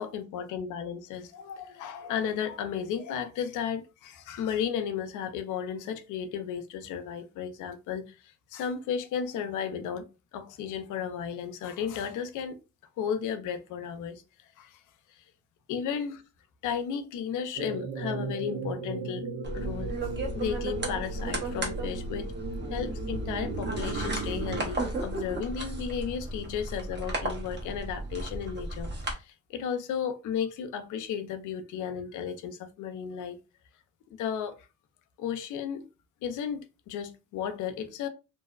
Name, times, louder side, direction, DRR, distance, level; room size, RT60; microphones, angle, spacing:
voice 1, 0.0-8.2 8.5-10.1 10.3-12.6 13.0-14.2 14.6-14.8 15.7-16.2 16.6-19.3 19.5-19.9 20.3-22.3 22.7-33.4 34.1-34.6 35.2-35.9 36.2-38.1, left 7 dB, 80° left, 0.5 m, -34 dB
sound 1, 17.6-24.7, right 4 dB, 65° right, 0.6 m, -36 dB
sound 2, 19.4-29.1, right 1 dB, 35° right, 0.9 m, -34 dB
2.6 x 2.1 x 2.3 m
cardioid pair, 90°, 30 cm